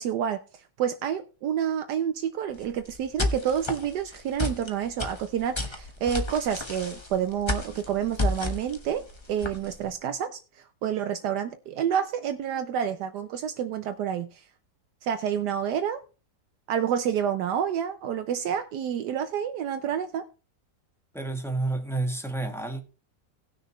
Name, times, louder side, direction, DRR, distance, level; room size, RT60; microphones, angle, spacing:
voice 1, 0.0-14.4 15.0-16.0 16.7-20.3, right 9 dB, 75° right, 1.2 m, -29 dB
sound 1, 2.5-9.9, left 2 dB, 20° left, 1.1 m, -32 dB
voice 2, 21.1-22.8, right 2 dB, ahead, 1.3 m, -29 dB
18.0 x 6.4 x 3.1 m
omnidirectional pair, 1.9 m